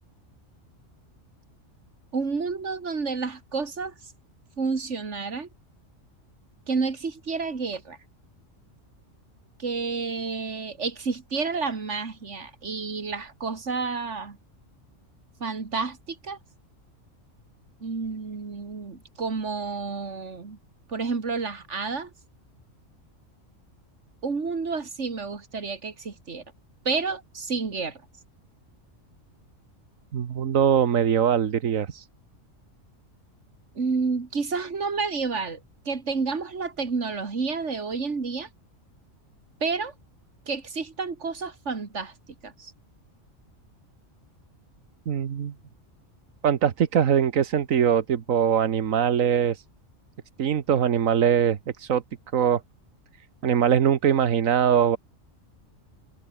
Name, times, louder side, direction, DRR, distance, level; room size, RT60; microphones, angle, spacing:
voice 1, 2.1-3.9 4.6-5.5 6.7-8.0 9.6-14.4 15.4-16.4 17.8-20.6 20.9-22.1 24.2-26.4 26.8-28.0 33.7-35.6 35.9-38.5 39.6-39.9 40.5-42.1 42.4-42.7, right 4 dB, 60° right, 2.6 m, -30 dB
voice 2, 30.1-32.0 45.1-45.5 46.4-49.6 50.4-52.0 52.3-52.6 53.4-55.0, right 8 dB, 90° right, 1.5 m, -22 dB
omnidirectional pair, 1.4 m